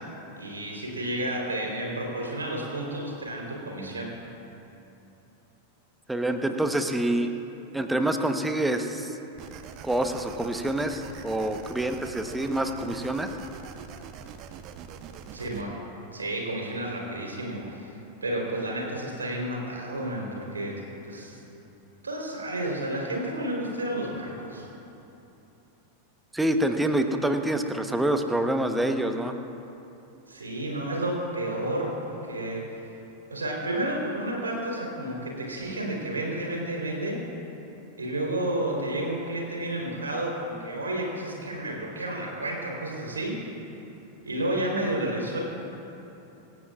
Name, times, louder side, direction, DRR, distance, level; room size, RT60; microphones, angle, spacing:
voice 1, 0.4-4.1 15.3-15.7 16.1-17.9 18.2-21.4 22.0-24.7 30.3-32.7 33.3-37.2 38.0-43.3 44.2-45.4, right 1 dB, 75° right, -1 dB, 3.7 m, -31 dB
voice 2, 6.1-7.3 7.7-9.2 9.8-13.3 26.3-29.4, right 1 dB, 5° right, 7 dB, 1.0 m, -26 dB
sound 1, 9.4-15.6, right 7 dB, 40° right, 0.9 m, -44 dB
26.5 x 15.0 x 2.4 m, 3.0 s
figure-of-eight pair, 90°, 0 cm